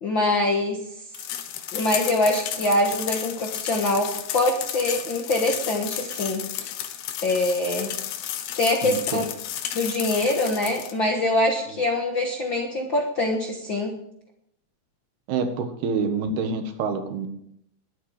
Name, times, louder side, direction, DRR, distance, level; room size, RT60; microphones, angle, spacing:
voice 1, 0.0-0.8 1.7-6.4 7.2-7.9 8.5-9.3 9.7-13.9, left 2 dB, 60° left, 1 dB, 1.3 m, -24 dB
sound 1, 1.1-10.9, left 11 dB, 90° left, 3.1 m, -32 dB
voice 2, 8.8-9.3 11.7-11.8 15.3-17.3, right 4 dB, 90° right, 6 dB, 3.6 m, -27 dB
21.5 x 8.8 x 5.0 m, 0.74 s
omnidirectional pair, 4.4 m